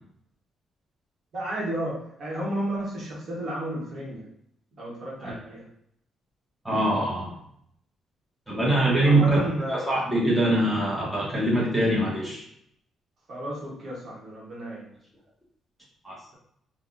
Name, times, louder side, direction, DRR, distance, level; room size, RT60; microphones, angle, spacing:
voice 1, 1.3-4.2 4.8-5.7 9.0-9.8 13.3-14.9, right 1 dB, 55° right, -5 dB, 1.1 m, -32 dB
voice 2, 6.6-7.3 8.5-9.4 9.7-12.4 16.0-16.4, right 1 dB, 5° right, -5 dB, 1.1 m, -23 dB
3.5 x 2.3 x 2.5 m, 0.72 s
cardioid pair, 95°, 0 cm